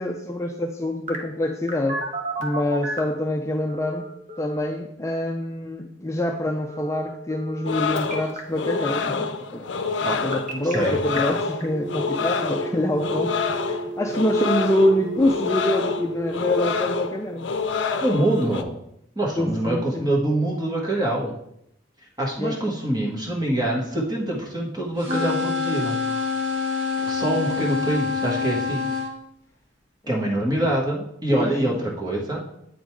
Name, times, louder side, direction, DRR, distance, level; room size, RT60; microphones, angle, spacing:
voice 1, 0.0-2.0 2.4-4.1 4.4-17.5 19.3-20.1 22.4-22.6 27.0-27.1 31.3-31.5 31.8-31.9, left 1 dB, 15° left, 2 dB, 0.4 m, -26 dB
Telephone, 1.1-3.2 3.7-4.7 6.7-7.7 8.0-8.4 10.1-10.7 11.2-11.3 11.6-16.7, right 2 dB, 40° right, 1.1 m, -33 dB
sound 1, 7.6-18.6, left 4 dB, 75° left, 0.5 m, -27 dB
voice 2, 10.6-11.0 18.0-18.7 19.1-21.3 22.2-26.0 27.1-28.9 30.1-32.4, right 1 dB, 20° right, -2 dB, 1.5 m, -25 dB
sound 2, 25.0-29.1, left 5 dB, 75° right, 1.8 m, -26 dB
8.3 x 4.0 x 4.7 m, 0.76 s
head